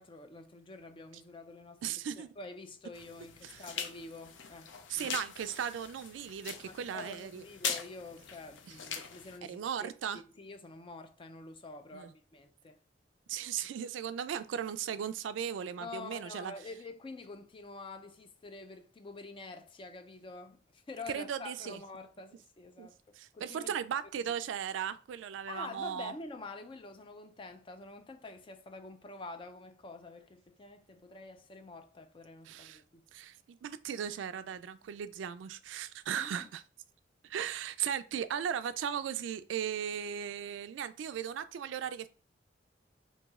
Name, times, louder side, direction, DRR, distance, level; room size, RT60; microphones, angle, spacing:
voice 1, 0.0-5.1 6.7-12.8 15.8-23.7 25.5-33.0 36.1-36.5, left 3 dB, 30° left, 0.4 m, -47 dB
voice 2, 1.8-2.3 3.4-3.7 4.9-7.4 9.4-10.2 11.9-12.1 13.3-16.5 21.1-21.8 22.8-22.9 23.2-26.1 32.5-32.8 33.1-36.6 37.2-42.1, right 8 dB, 85° right, 0.3 m, -37 dB
sound 1, 2.9-9.4, left 6 dB, 90° left, 0.5 m, -42 dB
3.0 x 2.7 x 3.5 m
head